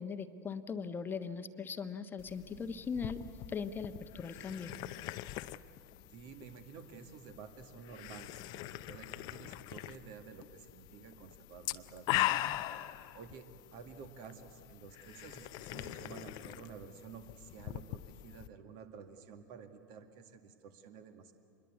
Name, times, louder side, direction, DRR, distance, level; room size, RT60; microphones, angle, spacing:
voice 1, 0.0-4.7, left 5 dB, 20° left, 9 dB, 1.2 m, -40 dB
sound 1, 2.2-18.5, left 16 dB, 40° left, 0.7 m, -41 dB
voice 2, 6.1-12.4 13.1-21.3, right 6 dB, 45° right, 8 dB, 2.0 m, -51 dB
26.0 x 21.5 x 8.3 m, 2.5 s
figure-of-eight pair, 90°, 11 cm